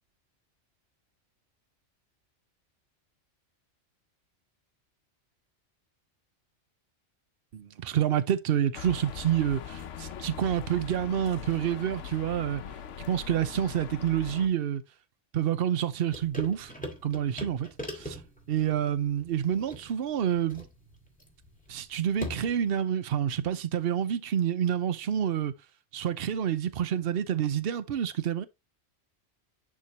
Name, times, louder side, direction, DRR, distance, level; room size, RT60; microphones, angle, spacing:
voice 1, 7.5-12.6 13.1-14.8 15.3-16.7 17.0-17.7 17.9-18.2 18.5-20.7 21.7-25.5 25.9-28.5, right 9 dB, 60° right, 0.9 m, -28 dB
sound 1, 8.7-14.5, left 8 dB, 80° left, 1.0 m, -41 dB
sound 2, 16.1-22.7, left 1 dB, 5° left, 1.9 m, -42 dB
10.5 x 3.8 x 2.9 m
omnidirectional pair, 1.2 m